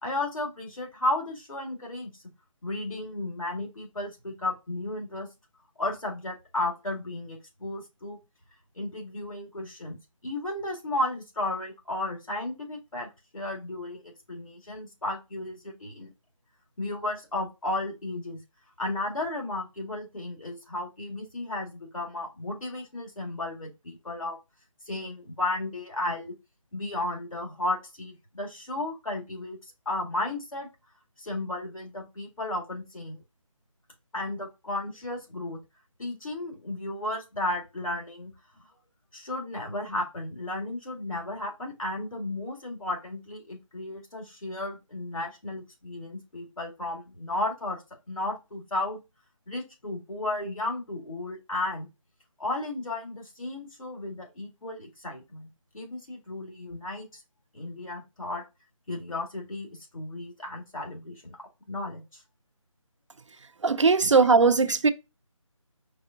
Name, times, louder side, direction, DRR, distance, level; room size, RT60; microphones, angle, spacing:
voice 1, 0.0-2.1 2.6-5.3 5.8-8.2 8.8-16.1 16.8-18.4 18.8-24.4 24.9-26.3 26.7-30.7 31.2-33.2 34.1-35.6 36.0-38.3 39.1-49.0 49.5-51.9 52.4-55.5 55.7-57.2 57.5-58.4 58.9-62.2 64.0-64.1, left 2 dB, 75° left, 1.9 m, -34 dB
voice 2, 63.6-64.9, right 4 dB, 60° right, 0.5 m, -19 dB
4.7 x 3.4 x 2.6 m
figure-of-eight pair, 180°, 17 cm